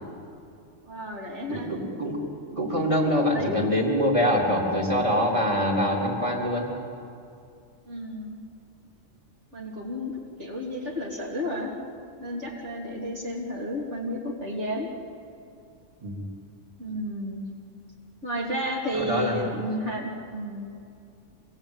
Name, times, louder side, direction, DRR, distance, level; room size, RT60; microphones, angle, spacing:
voice 1, 0.8-1.7 2.5-2.9 3.3-3.6 7.9-8.4 9.5-11.7 12.2-14.9 16.8-17.4 18.2-20.7, equal, 65° right, -3 dB, 3.6 m, -32 dB
voice 2, 1.5-2.2 2.6-6.7 16.0-16.2 19.0-19.5, equal, 25° right, -2 dB, 3.7 m, -24 dB
26.5 x 19.5 x 8.9 m, 2.5 s
omnidirectional pair, 1.3 m